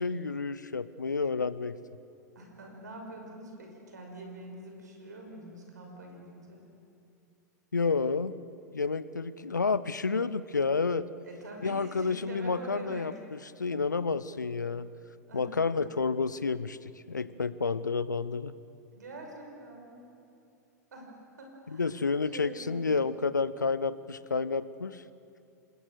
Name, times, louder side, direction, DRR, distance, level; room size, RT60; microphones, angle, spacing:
voice 1, 0.0-1.7 7.7-8.3 8.7-11.1 11.6-14.9 15.3-18.5 21.7-25.0, left 4 dB, 85° left, 16 dB, 0.7 m, -30 dB
voice 2, 2.3-6.6 11.2-13.1 15.3-15.7 18.9-20.0 20.9-21.1 21.4-21.9 22.3-22.9, right 2 dB, 75° right, 2 dB, 5.6 m, -45 dB
27.0 x 20.5 x 6.5 m, 2.7 s
figure-of-eight pair, 95°, 10 cm